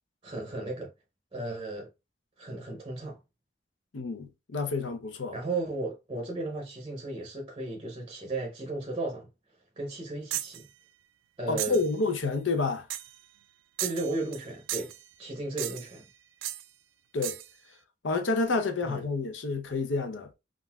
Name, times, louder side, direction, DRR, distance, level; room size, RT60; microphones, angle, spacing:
voice 1, 0.2-0.9 1.3-1.9 2.4-3.2 5.3-9.3 9.8-10.7 11.4-11.8 13.8-16.0 18.8-19.0, right 2 dB, 25° right, 0.6 m, -35 dB
voice 2, 3.9-5.4 11.5-12.9 17.1-17.4 18.0-20.3, left 3 dB, 80° left, 0.6 m, -29 dB
sound 1, 10.3-10.6 11.6-11.9 12.9-13.2 13.8-14.4 14.7-15.0 15.6-16.0 16.4-16.6 17.2-17.5, right 13 dB, 90° right, 0.3 m, -35 dB
3.7 x 2.4 x 2.3 m
head